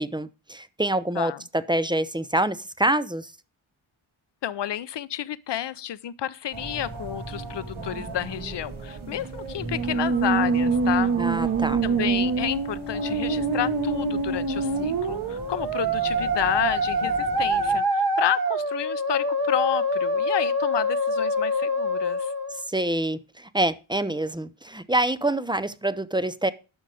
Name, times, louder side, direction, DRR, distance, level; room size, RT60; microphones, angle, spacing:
voice 1, 0.0-3.3 11.2-11.8 22.7-26.5, right 1 dB, 10° right, 0.4 m, -26 dB
voice 2, 4.4-11.1 11.8-22.3, left 11 dB, 60° left, 0.6 m, -30 dB
sound 1, 6.5-17.8, right 3 dB, 75° right, 2.6 m, -38 dB
Musical instrument, 9.6-22.7, right 2 dB, 50° right, 1.3 m, -25 dB
11.0 x 6.5 x 4.8 m
wide cardioid pair, 120°, 48 cm